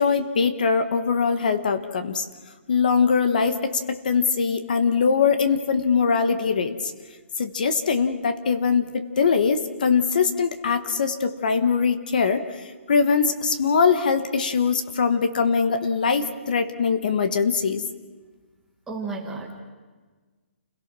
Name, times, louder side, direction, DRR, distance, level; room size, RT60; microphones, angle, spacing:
voice 1, 0.0-2.3 2.7-6.7 7.4-12.4 12.9-17.9, left 5 dB, 40° left, 10 dB, 1.3 m, -22 dB
voice 2, 18.9-19.6, right 3 dB, 5° right, 0 dB, 1.4 m, -32 dB
29.0 x 17.5 x 6.2 m, 1.4 s
hypercardioid pair, 180°, 7 cm